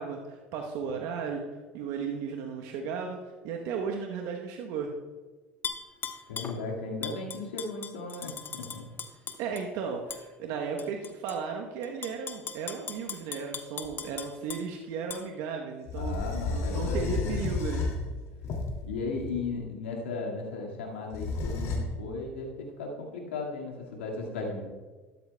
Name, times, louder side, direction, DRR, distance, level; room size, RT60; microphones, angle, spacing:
voice 1, 0.0-3.2 3.4-4.9 9.4-16.2 16.5-17.9, right 6 dB, 65° right, 2 dB, 1.0 m, -35 dB
Tap / Glass, 5.6-6.6 7.0-9.6 10.1-10.2 10.8-11.4 11.8-14.6 15.1-15.2, left 6 dB, 35° left, 1.0 m, -38 dB
voice 2, 6.3-8.9 16.0-17.4 18.8-24.6, left 3 dB, 85° left, -1 dB, 2.0 m, -36 dB
sound 1, 13.8-13.9 15.9-19.5 21.1-21.8, left 4 dB, 55° left, 2.4 m, -32 dB
13.0 x 12.5 x 2.3 m, 1.3 s
hypercardioid pair, 75°, 6 cm